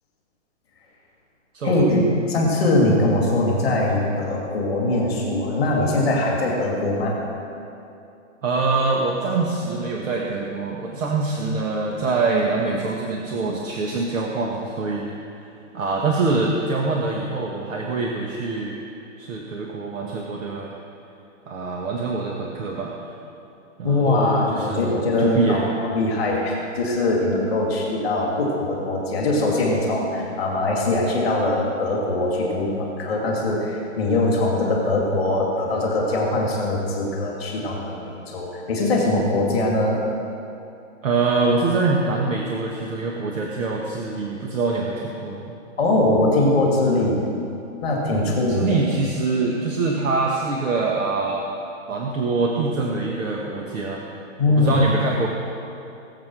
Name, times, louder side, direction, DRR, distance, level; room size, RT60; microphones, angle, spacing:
voice 1, 1.6-7.2 23.8-25.7 25.9-40.0 45.8-47.2 47.8-48.8 54.4-54.7, left 2 dB, ahead, -21 dB, 0.4 m, -22 dB
voice 2, 8.4-15.1 15.4-18.8 19.2-20.7 21.5-22.9 23.8-24.9 25.2-25.7 41.0-45.4 48.1-51.5 51.9-54.1 54.5-55.3, right 3 dB, 75° right, -1 dB, 1.8 m, -24 dB
19.0 x 7.6 x 6.3 m, 2.7 s
hypercardioid pair, 160°, 39 cm